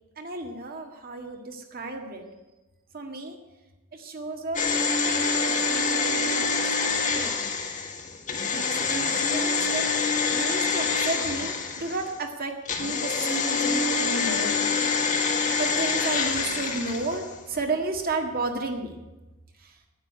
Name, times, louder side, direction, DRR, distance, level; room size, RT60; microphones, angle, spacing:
voice 1, 0.2-2.3 2.9-3.4 3.9-5.4 5.7-6.5 6.8-7.3 8.5-12.5 12.8-14.6 15.6-19.0 19.6-19.7, right 2 dB, 45° right, 3 dB, 1.8 m, -33 dB
sound 1, 4.5-12.1 12.6-17.4 17.6-17.7, left 4 dB, 35° left, 1.5 m, -26 dB
9.6 x 9.3 x 9.4 m, 1.1 s
head